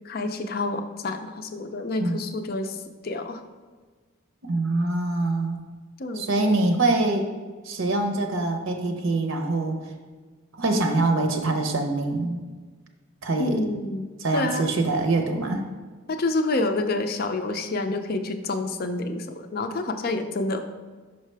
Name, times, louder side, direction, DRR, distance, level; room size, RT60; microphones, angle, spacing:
voice 1, 0.0-3.4 6.0-6.5 13.4-14.1 14.3-14.7 16.1-20.6, left 2 dB, 45° left, 7 dB, 0.4 m, -28 dB
voice 2, 4.5-5.6 6.2-7.3 7.6-9.7 10.6-12.4 13.2-13.7 14.2-15.6, right 2 dB, 70° right, 4 dB, 0.7 m, -24 dB
5.7 x 5.4 x 3.3 m, 1.4 s
head